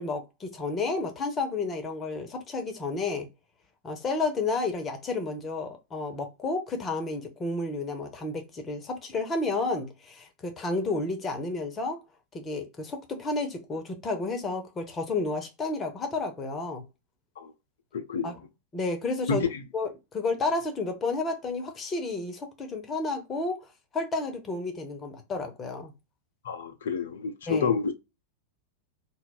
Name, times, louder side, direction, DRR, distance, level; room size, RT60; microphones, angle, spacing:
voice 1, 0.0-3.3 3.8-12.0 12.3-16.8 18.2-18.3 18.7-19.5 19.7-23.7 23.9-25.9 27.5-27.7, left 3 dB, 20° left, 0.7 m, -31 dB
voice 2, 17.9-18.3 19.3-19.6 26.4-27.9, left 5 dB, 60° left, 0.4 m, -28 dB
2.3 x 2.0 x 3.8 m
figure-of-eight pair, 90°, 0 cm